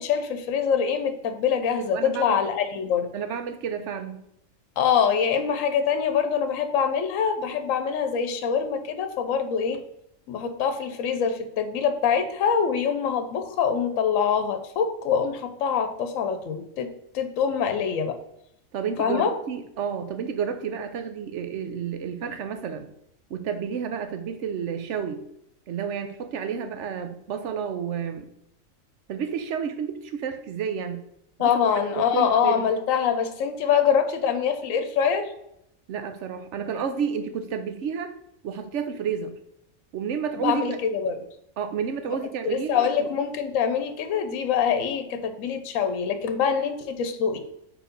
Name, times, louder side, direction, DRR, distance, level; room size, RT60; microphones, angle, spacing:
voice 1, 0.0-3.1 4.8-9.8 10.3-18.2 19.0-19.3 31.4-35.3 40.4-41.2 42.5-47.4, left 7 dB, 75° left, 8 dB, 1.1 m, -24 dB
voice 2, 1.9-2.4 3.1-4.2 18.7-22.9 23.3-25.2 25.7-28.3 29.1-31.0 31.4-31.5 31.9-32.6 35.9-38.1 38.4-39.3 39.9-40.8 41.6-43.1, right 7 dB, 65° right, 8 dB, 0.9 m, -30 dB
4.6 x 4.0 x 5.2 m, 0.77 s
omnidirectional pair, 1.4 m